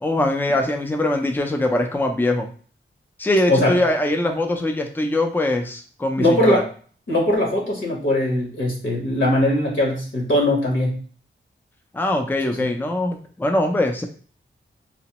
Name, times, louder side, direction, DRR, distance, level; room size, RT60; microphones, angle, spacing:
voice 1, 0.0-2.5 3.2-6.6 11.9-14.0, left 1 dB, 10° left, 4 dB, 0.4 m, -22 dB
voice 2, 6.2-6.6 7.1-11.0, left 1 dB, 70° left, -2 dB, 1.1 m, -20 dB
2.9 x 2.0 x 2.8 m, 0.43 s
wide cardioid pair, 70°, 21 cm